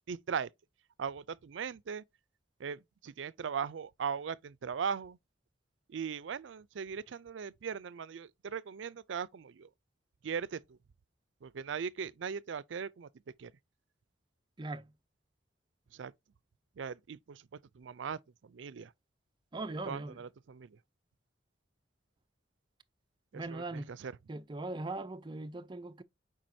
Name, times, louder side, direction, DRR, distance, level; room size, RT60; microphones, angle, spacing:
voice 1, 0.1-0.5 1.0-2.0 2.6-5.2 5.9-9.7 10.2-10.8 11.4-13.1 13.4-13.5 15.9-16.1 16.8-17.5 17.7-18.9 19.9-20.8 23.3-24.1, right 6 dB, 80° right, 0.4 m, -39 dB
voice 2, 14.6-14.9 19.5-20.2 23.3-23.9 24.3-26.0, right 2 dB, 25° right, 0.5 m, -40 dB
7.5 x 4.8 x 2.7 m
head